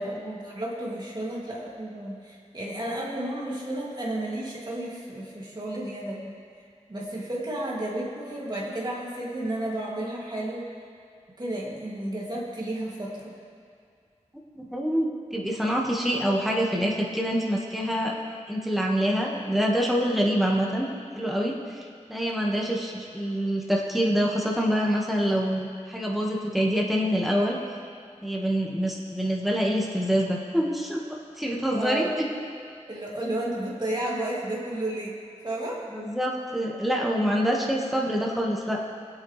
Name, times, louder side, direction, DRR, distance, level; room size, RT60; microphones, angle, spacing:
voice 1, 0.0-6.3 6.9-10.7 11.4-13.3 31.7-32.1 32.9-35.2 35.4-35.8, right 1 dB, 35° right, -5 dB, 2.7 m, -32 dB
voice 2, 14.5-18.1 18.5-20.9 21.1-21.8 22.1-27.6 28.2-31.0 31.4-32.1 35.9-38.8, equal, ahead, -2 dB, 1.7 m, -26 dB
21.5 x 9.0 x 3.4 m, 2.3 s
wide cardioid pair, 70°, 12 cm